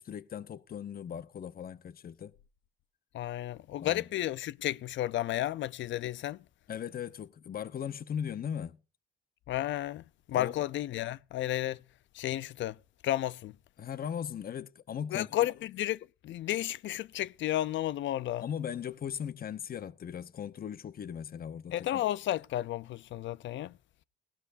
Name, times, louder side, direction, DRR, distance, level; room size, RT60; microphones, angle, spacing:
voice 1, 0.0-2.3 3.8-4.1 6.7-8.8 10.3-10.5 13.8-15.3 18.4-22.0, left 8 dB, 50° left, 0.9 m, -38 dB
voice 2, 3.1-6.4 9.5-11.8 12.1-12.8 13.0-13.6 15.1-18.4 21.7-23.7, left 13 dB, 70° left, 0.5 m, -32 dB
18.0 x 12.5 x 2.6 m
cardioid pair, 90°, 20 cm